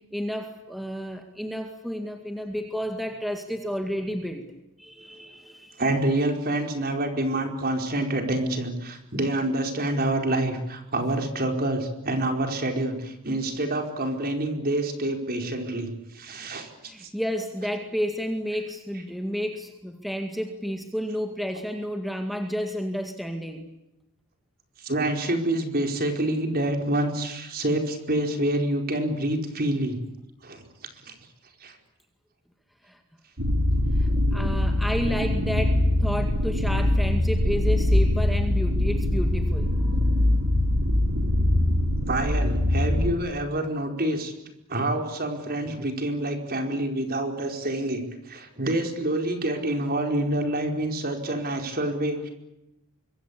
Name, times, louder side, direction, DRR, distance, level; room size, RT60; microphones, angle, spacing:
voice 1, 0.1-4.4 4.8-5.8 16.9-23.7 32.8-33.0 34.0-39.7, equal, ahead, 4 dB, 2.1 m, -31 dB
voice 2, 5.8-16.7 17.0-17.1 24.8-30.0 30.4-30.6 31.0-31.1 31.6-31.7 42.1-44.3 44.7-52.3, right 1 dB, 45° right, 4 dB, 4.8 m, -27 dB
sound 1, 33.4-43.1, left 1 dB, 65° right, 4.2 m, -23 dB
25.5 x 23.5 x 8.7 m, 0.91 s
head